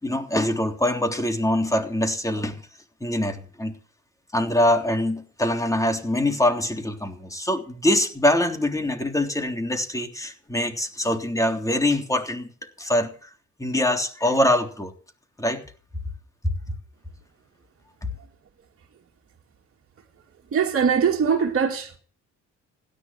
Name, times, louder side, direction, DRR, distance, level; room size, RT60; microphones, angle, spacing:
voice 1, 0.0-2.6 3.0-3.8 4.3-13.3 13.6-14.9 15.4-15.6, left 1 dB, 10° left, 3.5 m, -24 dB
voice 2, 20.5-22.0, right 6 dB, 50° right, 2.8 m, -21 dB
16.5 x 10.5 x 7.7 m
cardioid pair, 90°, 30 cm